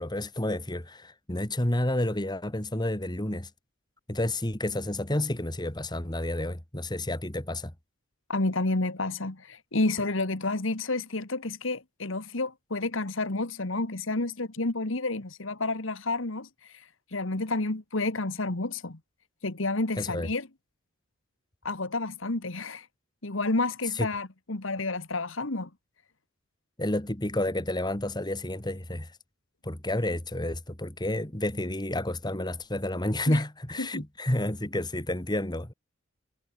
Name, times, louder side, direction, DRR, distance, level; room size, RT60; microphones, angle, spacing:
voice 1, 0.0-3.5 4.1-7.7 20.0-20.3 24.0-24.1 26.8-29.1 29.6-35.7, left 1 dB, 20° left, 2.1 m, -30 dB
voice 2, 8.3-16.5 17.1-19.0 19.4-20.5 21.6-22.9 23.2-25.7 33.3-33.4 33.8-34.0, left 2 dB, 65° left, 1.7 m, -30 dB
head